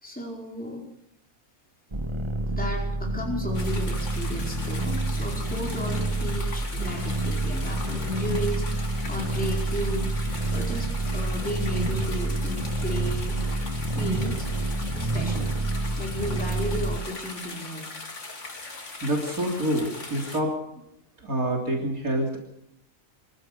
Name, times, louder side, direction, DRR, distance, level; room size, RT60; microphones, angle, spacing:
voice 1, 0.0-0.8 2.5-8.7 9.1-10.1 10.5-13.4 13.7-14.5 14.9-15.5 16.0-17.9, equal, 5° left, -2 dB, 4.9 m, -34 dB
sound 1, 1.9-17.0, right 2 dB, 20° right, 1.7 m, -28 dB
sound 2, 3.5-20.4, left 3 dB, 60° left, 3.0 m, -40 dB
voice 2, 19.0-20.5 21.2-22.4, right 1 dB, 80° right, 0 dB, 3.8 m, -27 dB
25.0 x 15.0 x 6.9 m, 0.80 s
omnidirectional pair, 1.5 m